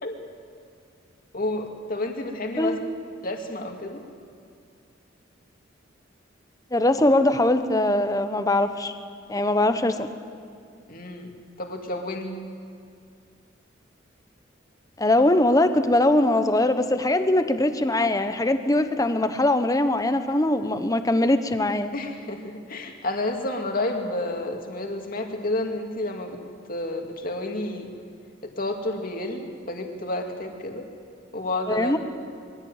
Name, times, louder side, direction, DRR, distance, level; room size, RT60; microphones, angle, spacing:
voice 1, 1.3-2.8 3.2-4.0 10.9-11.3 11.6-12.4 21.9-26.4 26.7-27.9 28.6-30.8 31.3-31.9, left 1 dB, 45° left, 3 dB, 2.2 m, -30 dB
voice 2, 6.7-8.9 9.3-10.1 15.0-21.9 31.7-32.0, left 1 dB, 20° left, 9 dB, 1.0 m, -21 dB
22.5 x 16.0 x 9.1 m, 2.4 s
head